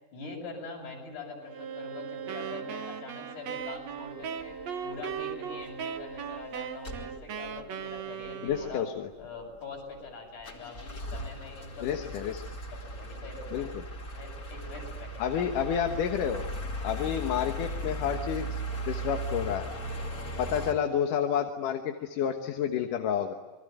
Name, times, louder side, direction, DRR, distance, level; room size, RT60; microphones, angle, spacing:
voice 1, 0.1-4.6 4.8-8.8 9.2-12.1 12.9-13.7 14.1-15.5, left 3 dB, 70° left, 1 dB, 9.3 m, -43 dB
Bowed string instrument, 1.4-7.3, right 6 dB, 85° right, 5.1 m, -43 dB
Wind instrument woodwind instrument, 2.3-9.1, right 8 dB, 65° right, 2.4 m, -38 dB
sound 1, 4.4-4.6 5.1-5.3 5.6-5.7 6.0-6.4 6.8-7.6 8.0-8.1 8.2-8.7 9.2-10.1 10.4-20.7, right 1 dB, 30° left, 2.9 m, -37 dB
voice 2, 8.4-9.1 11.8-12.4 13.5-13.8 15.2-16.4 16.8-18.6 18.9-19.7 20.4-23.3, left 8 dB, 90° left, 4 dB, 3.0 m, -30 dB
28.0 x 23.0 x 9.2 m, 1.2 s
omnidirectional pair, 3.6 m